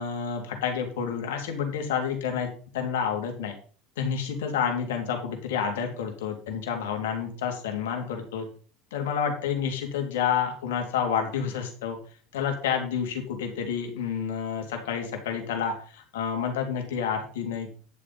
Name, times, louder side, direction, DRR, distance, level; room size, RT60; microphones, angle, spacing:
voice 1, 0.0-2.5 2.7-3.5 4.0-8.5 8.9-12.0 12.3-17.7, left 7 dB, 75° left, 3 dB, 3.2 m, -29 dB
11.0 x 6.9 x 5.4 m, 0.41 s
hypercardioid pair, 75°, 0 cm